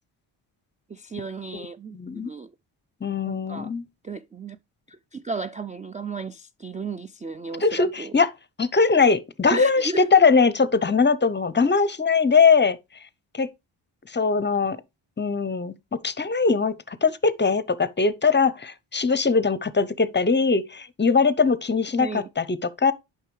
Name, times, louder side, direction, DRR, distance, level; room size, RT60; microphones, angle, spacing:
voice 1, 0.9-2.5 3.3-3.7 4.0-4.6 4.9-8.1 9.5-10.1 22.0-22.3, right 4 dB, 15° right, 0.4 m, -34 dB
voice 2, 1.9-2.3 3.0-3.8 7.6-8.3 8.6-12.8 13.3-13.5 14.1-14.8 15.2-15.7 16.0-22.9, left 4 dB, 20° left, 0.7 m, -21 dB
8.9 x 5.8 x 3.2 m
supercardioid pair, 60°, 49 cm